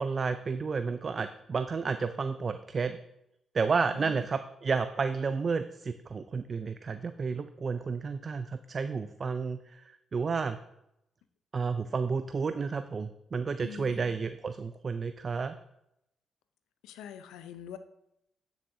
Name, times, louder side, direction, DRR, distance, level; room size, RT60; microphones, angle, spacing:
voice 1, 0.0-3.0 3.5-10.6 11.5-15.6, right 5 dB, 50° right, 10 dB, 0.4 m, -31 dB
voice 2, 3.9-4.3 13.6-14.2 16.8-17.8, left 9 dB, 85° left, 11 dB, 0.5 m, -45 dB
9.2 x 7.2 x 2.6 m, 0.83 s
supercardioid pair, 55°, 0 cm